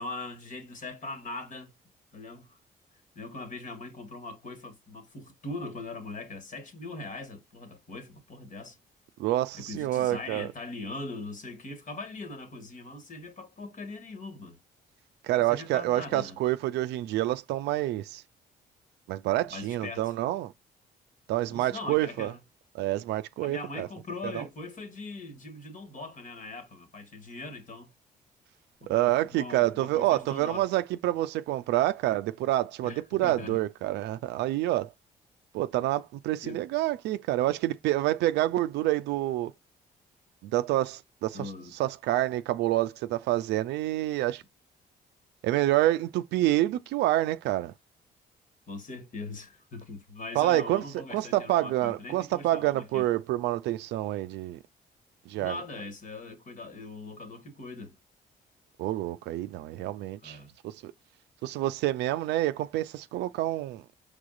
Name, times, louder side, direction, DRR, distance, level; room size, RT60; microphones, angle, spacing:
voice 1, 0.0-1.7 2.1-2.6 3.1-8.8 9.5-14.6 15.4-16.4 19.5-20.1 21.5-22.4 23.4-27.9 28.8-30.7 32.8-33.6 36.4-36.6 41.3-41.7 48.7-53.1 55.4-58.0 60.2-60.5, left 2 dB, 50° left, 1.5 m, -41 dB
voice 2, 9.2-10.5 15.2-18.2 19.1-20.5 21.3-22.3 22.7-23.9 24.2-24.4 28.9-34.9 35.5-39.5 40.4-41.5 41.8-44.4 45.4-47.7 50.3-54.6 55.3-55.6 58.8-60.4 60.6-60.9 61.4-64.0, right 15 dB, 85° right, 0.4 m, -28 dB
4.9 x 3.5 x 2.5 m
cardioid pair, 75°, 17 cm